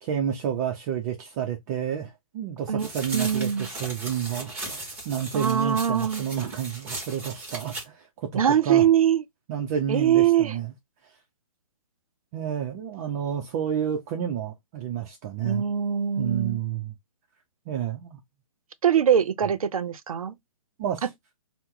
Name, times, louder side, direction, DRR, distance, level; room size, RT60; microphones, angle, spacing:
voice 1, 0.0-8.8 9.5-10.7 11.0-11.1 12.3-15.7 16.2-16.9 17.7-18.2 20.8-21.0, right 9 dB, 30° right, 0.5 m, -30 dB
voice 2, 2.7-3.7 5.3-6.2 8.3-9.2 9.9-10.6 15.4-16.6 18.8-20.4 21.0-21.1, right 9 dB, 75° right, 0.5 m, -22 dB
sound 1, 2.8-7.8, right 2 dB, 10° right, 1.0 m, -37 dB
2.8 x 2.1 x 3.6 m
hypercardioid pair, 135°, 18 cm